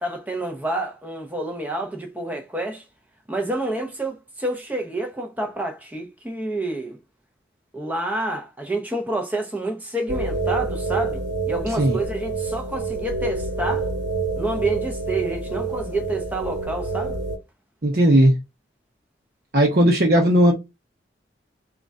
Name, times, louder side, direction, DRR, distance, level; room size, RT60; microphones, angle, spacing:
voice 1, 0.0-2.8 3.3-7.0 7.7-13.9 14.4-17.2, right 1 dB, 10° right, 0.7 m, -28 dB
sound 1, 10.1-17.4, right 3 dB, 85° right, 0.9 m, -27 dB
voice 2, 17.8-18.4 19.5-20.5, right 1 dB, 55° right, 0.8 m, -16 dB
3.8 x 2.4 x 4.1 m
head